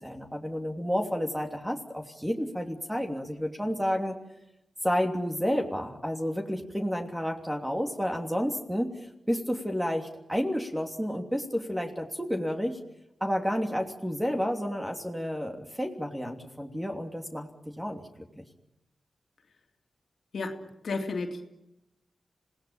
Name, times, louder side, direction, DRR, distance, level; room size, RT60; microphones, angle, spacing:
voice 1, 0.0-4.1 4.8-8.9 9.3-12.8 13.2-17.5 17.8-18.4, equal, 5° right, 2 dB, 3.0 m, -30 dB
voice 2, 20.3-21.4, left 3 dB, 70° left, 4 dB, 2.7 m, -33 dB
26.5 x 18.5 x 8.7 m, 0.88 s
cardioid pair, 55°, 0 cm